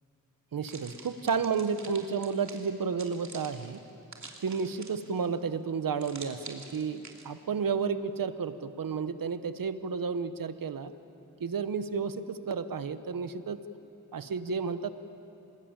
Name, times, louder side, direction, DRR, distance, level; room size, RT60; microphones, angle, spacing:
voice 1, 0.5-3.8 4.4-10.9 11.4-13.6 14.1-14.9, right 5 dB, 85° right, 12 dB, 1.1 m, -32 dB
sound 1, 0.6-5.3 6.0-7.3, right 3 dB, 60° right, 2.8 m, -47 dB
27.0 x 20.0 x 9.0 m, 3.0 s
wide cardioid pair, 80°, 33 cm